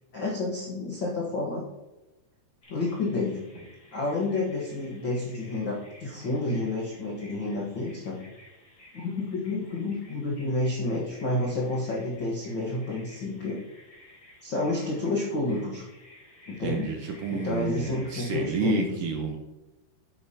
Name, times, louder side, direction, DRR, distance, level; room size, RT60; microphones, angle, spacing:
voice 1, 0.1-1.7 2.7-3.4 3.9-8.2 8.9-13.6 14.4-15.8 16.5-16.9 17.3-19.0, left 2 dB, 90° left, -4 dB, 1.0 m, -30 dB
Bird vocalization bird call bird song, 2.6-18.7, left 1 dB, 25° left, 3.9 m, -52 dB
voice 2, 16.6-19.4, right 4 dB, 70° right, 2 dB, 2.1 m, -30 dB
10.5 x 8.9 x 2.9 m, 1.0 s
omnidirectional pair, 4.8 m